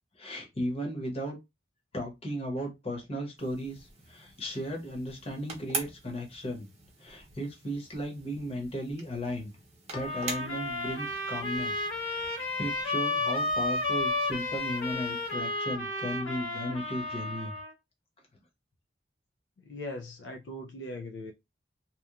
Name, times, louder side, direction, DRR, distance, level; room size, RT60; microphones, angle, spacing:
voice 1, 0.2-1.4 1.9-6.7 7.0-9.5 9.9-17.5, equal, 30° left, 0.9 m, -36 dB
sound 1, 3.4-15.3, right 4 dB, 35° right, 0.7 m, -45 dB
sound 2, 9.9-17.7, left 2 dB, 90° left, 1.2 m, -32 dB
voice 2, 19.6-21.3, left 1 dB, 65° left, 0.4 m, -40 dB
2.9 x 2.2 x 2.3 m
head